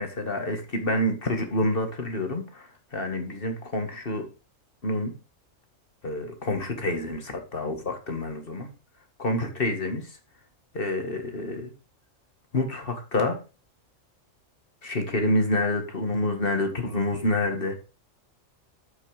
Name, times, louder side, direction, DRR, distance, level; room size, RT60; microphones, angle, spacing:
voice 1, 0.0-2.7 2.9-4.3 4.8-5.1 6.0-8.7 9.2-10.0 10.7-11.7 12.5-13.4 14.8-17.8, left 1 dB, 45° left, 5 dB, 1.9 m, -27 dB
7.7 x 6.4 x 4.9 m, 0.33 s
omnidirectional pair, 1.4 m